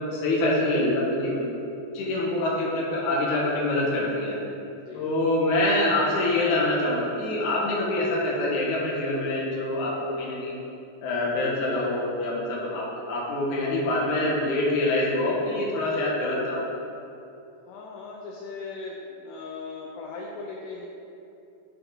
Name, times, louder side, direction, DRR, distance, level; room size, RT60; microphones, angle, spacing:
voice 1, 0.0-1.5 1.9-4.4 4.9-10.5 11.0-16.6, left 1 dB, 60° left, -5 dB, 2.1 m, -25 dB
voice 2, 2.0-2.4 4.8-5.1 7.5-7.8 17.7-20.9, left 4 dB, 80° left, -2 dB, 2.5 m, -39 dB
11.0 x 4.3 x 3.9 m, 2.7 s
omnidirectional pair, 5.4 m